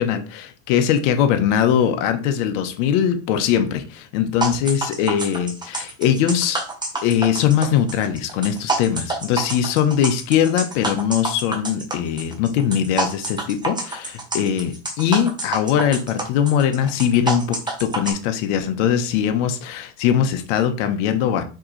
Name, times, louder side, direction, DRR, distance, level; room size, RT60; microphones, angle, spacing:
voice 1, 0.0-6.6 7.0-21.4, left 9 dB, 75° left, 0.9 m, -21 dB
sound 1, 4.4-18.1, right 2 dB, 10° right, 1.0 m, -27 dB
4.6 x 3.6 x 3.1 m
supercardioid pair, 120°, 37 cm